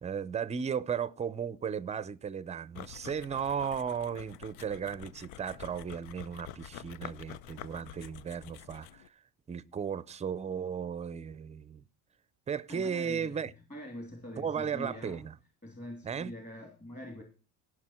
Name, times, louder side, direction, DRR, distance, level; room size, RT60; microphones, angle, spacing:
voice 1, 0.0-9.0 9.5-11.8 12.5-13.5 14.4-15.3 16.0-16.3, right 7 dB, 20° right, 0.5 m, -35 dB
sound 1, 2.7-9.1, left 11 dB, 90° left, 0.8 m, -48 dB
voice 2, 12.7-15.3 15.6-17.2, left 1 dB, 20° left, 2.9 m, -44 dB
17.5 x 6.5 x 4.4 m
cardioid pair, 145°, 38 cm